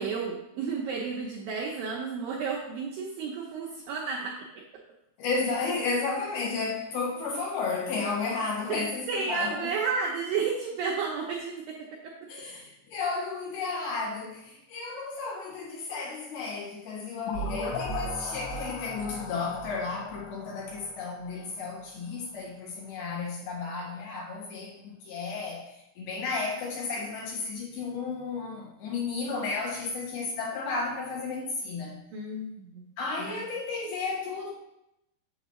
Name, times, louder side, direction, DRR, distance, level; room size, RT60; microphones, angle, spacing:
voice 1, 0.0-4.6 9.1-12.3 32.1-32.8 33.3-33.4, right 5 dB, 80° right, -2 dB, 2.1 m, -32 dB
voice 2, 5.2-9.7 12.3-25.7 26.0-32.0 33.0-34.5, left 4 dB, 70° left, -3 dB, 3.1 m, -33 dB
sound 1, 17.3-22.0, left 1 dB, 90° left, 3.1 m, -37 dB
7.1 x 7.0 x 3.0 m, 0.83 s
omnidirectional pair, 5.0 m